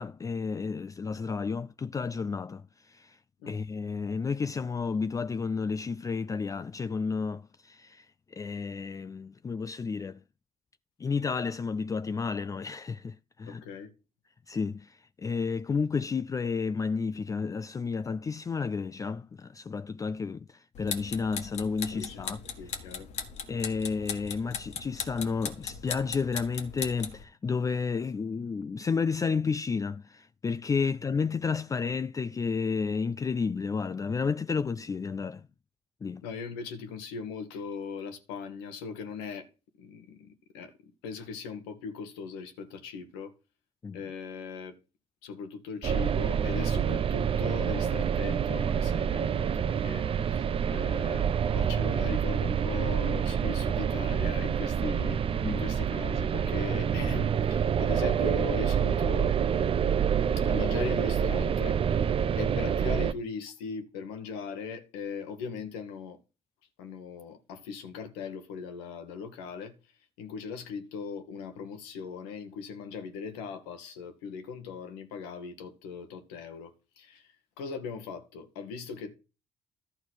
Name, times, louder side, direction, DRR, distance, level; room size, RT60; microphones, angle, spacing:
voice 1, 0.0-3.2 3.5-10.2 11.0-13.6 14.5-22.4 23.5-35.5 36.0-36.2 43.8-44.0 55.4-55.6, left 5 dB, 25° left, 0.4 m, -31 dB
voice 2, 13.5-13.9 21.9-23.1 36.2-39.5 39.8-40.7 41.0-43.3 43.9-44.8 45.2-59.8 60.4-61.8 62.4-66.2 66.8-69.7 70.2-79.2, left 5 dB, 90° left, 1.5 m, -39 dB
sound 1, 20.8-27.2, left 7 dB, 65° left, 1.6 m, -38 dB
sound 2, 45.8-63.1, right 8 dB, 50° right, 0.7 m, -27 dB
12.0 x 4.1 x 6.3 m
hypercardioid pair, 55°, 12 cm